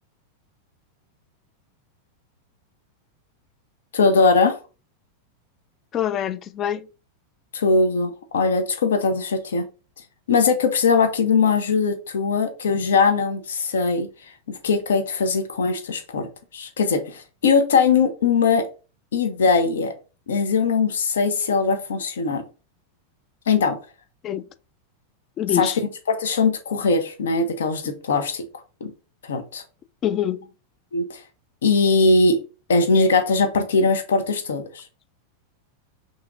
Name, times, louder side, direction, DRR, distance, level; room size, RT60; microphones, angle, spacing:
voice 1, 3.9-4.6 7.5-9.6 10.3-14.1 14.6-18.7 19.1-19.9 20.3-22.4 23.5-23.8 25.5-25.7 26.1-28.4 28.8-28.9 29.2-29.6 30.9-31.2 31.6-32.4 32.7-34.8, left 4 dB, 65° left, 0.6 m, -20 dB
voice 2, 5.9-6.9 24.2-24.4 25.4-25.8 30.0-30.5, left 11 dB, 30° left, 0.3 m, -25 dB
5.7 x 2.7 x 2.5 m
figure-of-eight pair, 90°, 0 cm